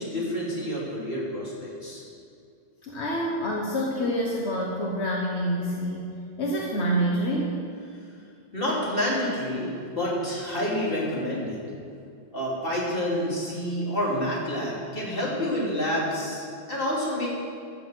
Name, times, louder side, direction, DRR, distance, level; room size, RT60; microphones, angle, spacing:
voice 1, 0.0-2.0 8.5-11.6 12.3-17.3, equal, 60° left, -5 dB, 3.3 m, -28 dB
voice 2, 2.8-6.1 6.4-7.5, equal, 90° left, -2 dB, 1.5 m, -27 dB
14.0 x 7.1 x 6.4 m, 2.4 s
omnidirectional pair, 1.1 m